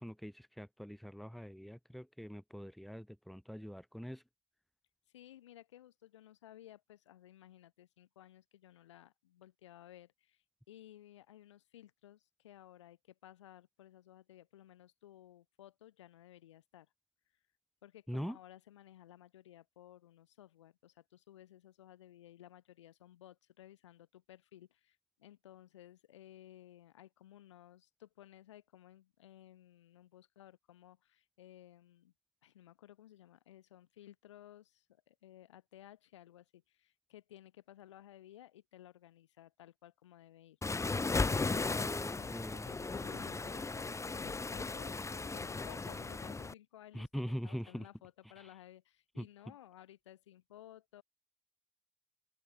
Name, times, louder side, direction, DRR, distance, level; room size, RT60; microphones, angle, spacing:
voice 1, 0.0-4.2 18.1-18.4 41.8-42.7 46.9-47.8 49.2-49.3, equal, ahead, 2.6 m, -43 dB
voice 2, 5.1-16.9 17.8-32.1 32.4-40.6 41.1-51.0, left 12 dB, 80° left, 7.7 m, -57 dB
Waves surf, 40.6-46.5, left 3 dB, 20° left, 1.4 m, -36 dB
open air
figure-of-eight pair, 50°, 15 cm